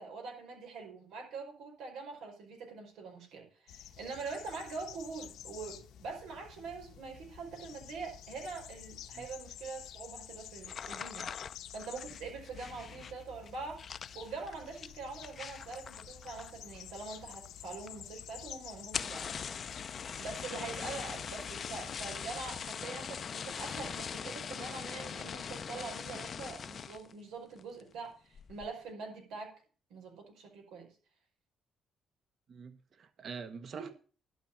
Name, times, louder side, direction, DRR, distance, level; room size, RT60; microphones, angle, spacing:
voice 1, 0.0-11.3 11.7-13.8 14.1-19.3 20.2-29.5 29.9-30.9 33.7-33.9, right 4 dB, 90° right, 5.1 m, -44 dB
sound 1, 3.7-22.7, left 10 dB, 85° left, 1.1 m, -50 dB
sound 2, 10.6-16.8 17.1-17.6 17.9-18.0 18.2-18.3 18.8-27.1 27.6-27.9 28.3-28.7, left 6 dB, 50° left, 0.6 m, -42 dB
voice 2, 32.5-33.9, right 5 dB, 55° right, 1.3 m, -45 dB
11.5 x 6.0 x 8.4 m
cardioid pair, 90°, 0 cm